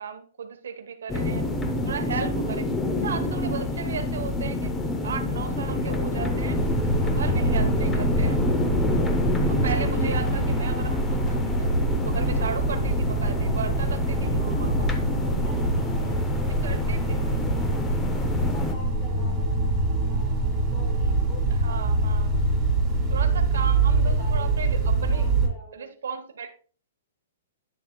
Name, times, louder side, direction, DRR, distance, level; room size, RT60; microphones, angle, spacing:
voice 1, 0.0-1.5 1.8-2.7 3.0-4.7 5.0-6.6 7.0-8.5 9.5-11.7 12.0-14.9 16.6-17.3 21.6-22.3 23.1-25.3 25.7-26.5, right 6 dB, 90° right, 6 dB, 1.0 m, -35 dB
sound 1, 1.1-18.7, left 2 dB, 10° left, 0.6 m, -28 dB
sound 2, 6.5-25.5, right 2 dB, 10° right, 1.7 m, -25 dB
voice 2, 9.5-10.6 14.2-14.9 15.4-17.8 18.3-22.0 23.3-25.9, left 1 dB, 25° left, 0 dB, 3.1 m, -46 dB
9.9 x 7.4 x 2.2 m, 0.41 s
hypercardioid pair, 170°, 0 cm